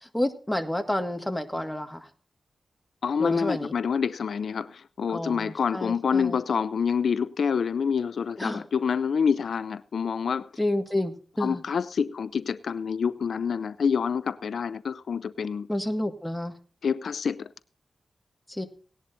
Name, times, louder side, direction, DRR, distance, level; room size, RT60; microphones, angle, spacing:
voice 1, 0.0-2.1 3.2-3.7 5.1-6.4 8.4-8.6 10.6-11.6 15.7-16.6 18.5-18.7, left 1 dB, 10° left, 1.8 m, -30 dB
voice 2, 3.0-10.5 11.4-15.7 16.8-17.5, left 6 dB, 75° left, 0.5 m, -27 dB
18.5 x 11.0 x 2.7 m
cardioid pair, 75°, 0 cm